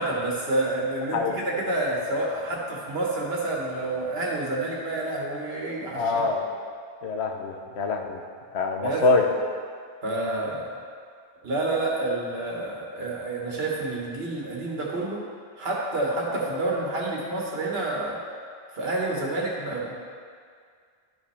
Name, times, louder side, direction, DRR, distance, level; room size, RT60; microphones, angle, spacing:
voice 1, 0.0-6.2 8.8-9.0 10.0-10.7 11.4-15.2 15.6-18.2 18.7-19.9, right 2 dB, 70° right, -2 dB, 1.6 m, -28 dB
voice 2, 5.9-6.4 7.0-8.2 8.5-9.3, left 3 dB, 85° left, 3 dB, 1.1 m, -24 dB
12.0 x 5.2 x 3.4 m, 2.1 s
omnidirectional pair, 1.1 m